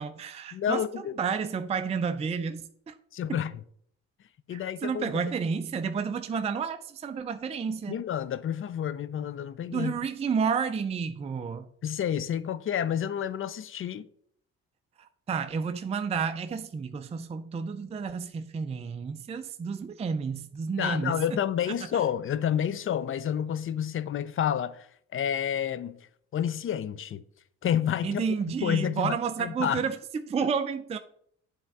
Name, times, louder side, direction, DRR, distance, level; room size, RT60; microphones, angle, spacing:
voice 1, 0.0-3.0 4.5-8.0 9.7-11.7 15.0-21.2 21.7-21.8 28.0-30.0 30.3-31.0, right 6 dB, 20° right, 0.4 m, -31 dB
voice 2, 0.5-1.1 3.1-3.5 4.5-5.1 7.9-9.9 11.8-14.0 20.8-24.9 25.1-26.1 26.3-27.2 27.6-28.2 28.6-29.8, left 9 dB, 45° left, 0.4 m, -29 dB
7.9 x 3.5 x 4.6 m
cardioid pair, 90°, 30 cm